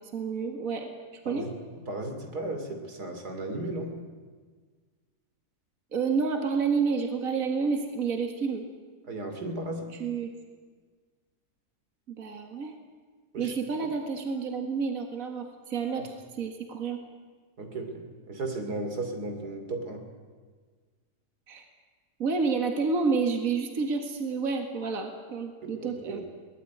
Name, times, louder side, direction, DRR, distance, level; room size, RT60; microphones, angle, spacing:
voice 1, 0.1-0.9 1.3-1.5 5.9-8.7 10.0-10.3 12.1-12.7 13.4-17.0 21.5-21.6 22.2-26.2, right 5 dB, 60° right, 4 dB, 2.3 m, -29 dB
voice 2, 1.2-4.0 9.1-9.9 13.3-13.6 16.0-16.1 17.6-20.1 25.6-26.2, right 2 dB, 85° right, 5 dB, 3.4 m, -35 dB
22.5 x 18.5 x 9.4 m, 1.5 s
omnidirectional pair, 1.6 m